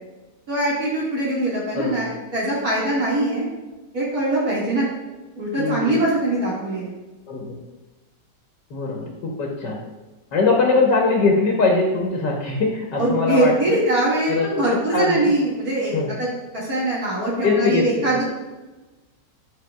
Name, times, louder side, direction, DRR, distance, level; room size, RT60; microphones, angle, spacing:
voice 1, 0.5-3.5 3.9-4.9 5.4-6.9 13.0-16.3 16.5-18.2, right 2 dB, 60° right, -6 dB, 2.4 m, -22 dB
voice 2, 5.6-6.1 7.3-7.6 8.7-9.8 10.3-13.8 14.3-15.3 15.9-16.1 17.4-18.2, left 3 dB, 90° left, -1 dB, 1.7 m, -22 dB
10.5 x 7.8 x 2.3 m, 1.2 s
omnidirectional pair, 1.8 m